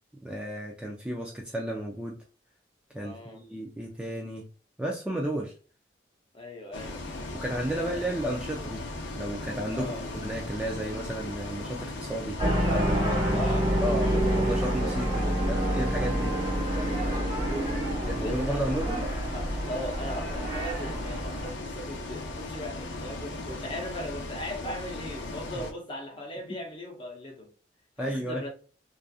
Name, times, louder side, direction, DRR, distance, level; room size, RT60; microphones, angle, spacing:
voice 1, 0.2-2.2 2.9-4.5 4.8-5.5 7.3-8.8 9.1-9.9 10.1-12.4 12.7-16.3 18.1-19.0 28.0-28.4, right 1 dB, 5° right, 0.3 m, -33 dB
voice 2, 3.0-3.4 6.3-7.0 7.7-8.1 9.7-10.1 13.3-14.3 15.2-15.6 17.2-18.8 19.3-27.5 28.0-28.5, left 1 dB, 30° left, 0.6 m, -38 dB
Bus, 6.7-25.7, left 2 dB, 90° left, 0.6 m, -38 dB
sound 1, 12.4-21.5, equal, 25° right, 1.2 m, -28 dB
2.6 x 2.4 x 2.3 m
head